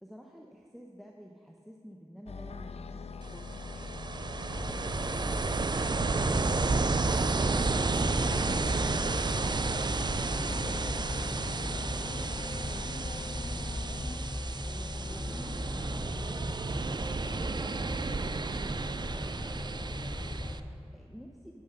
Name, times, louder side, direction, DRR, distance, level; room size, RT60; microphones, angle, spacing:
voice 1, 0.0-3.6 7.3-14.3 14.6-16.6 17.8-21.6, equal, ahead, 1 dB, 0.8 m, -50 dB
sound 1, 2.3-14.2, left 4 dB, 70° left, 0.4 m, -42 dB
Ocean, 3.2-20.6, right 3 dB, 40° right, 0.4 m, -32 dB
sound 2, 5.7-20.5, left 1 dB, 20° left, 1.1 m, -38 dB
10.5 x 7.1 x 5.7 m, 2.6 s
wide cardioid pair, 65°, 11 cm